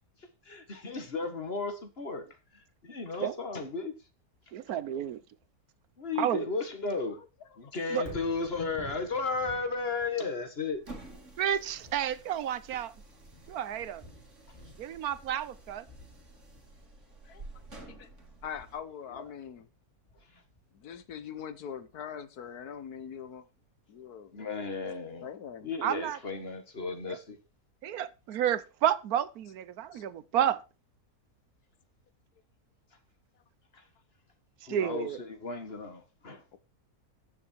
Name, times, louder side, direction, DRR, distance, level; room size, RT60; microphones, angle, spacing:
voice 1, 0.5-2.3 2.5-4.0 6.0-7.2 7.6-11.0 12.7-12.8 19.1-19.2 20.3-20.4 24.3-25.3 25.6-27.4 33.7-33.8 34.7-36.4, left 4 dB, 40° left, 2.0 m, -34 dB
voice 2, 4.5-5.2 6.2-6.4 7.9-8.0 11.4-12.9 13.5-14.0 14.8-15.8 25.8-26.2 27.8-30.6 34.7-35.2, right 10 dB, 75° right, 1.2 m, -30 dB
Thunder, 8.0-22.1 22.6-22.7, left 1 dB, 20° left, 4.8 m, -52 dB
sound 1, 10.7-18.8, right 2 dB, 50° right, 3.3 m, -51 dB
voice 3, 18.4-19.7 20.7-23.4 23.9-24.8 25.2-25.7 29.9-30.0 36.5-36.6, left 8 dB, 80° left, 1.6 m, -42 dB
15.0 x 7.1 x 4.6 m
omnidirectional pair, 1.6 m